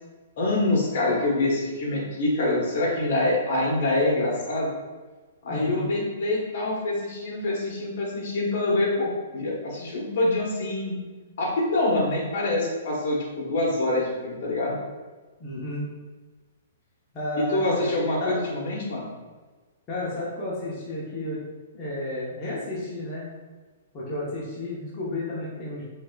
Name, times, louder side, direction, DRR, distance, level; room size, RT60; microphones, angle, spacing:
voice 1, 0.4-4.7 5.4-11.0 11.4-14.8 17.4-19.1, left 2 dB, 50° left, -3 dB, 1.2 m, -25 dB
voice 2, 5.5-5.9 15.4-15.8 17.1-17.9 18.2-18.3 19.9-21.4 21.7-23.3 23.9-25.8, left 1 dB, 20° left, -9 dB, 0.8 m, -32 dB
4.6 x 3.3 x 2.3 m, 1.4 s
hypercardioid pair, 165°, 0 cm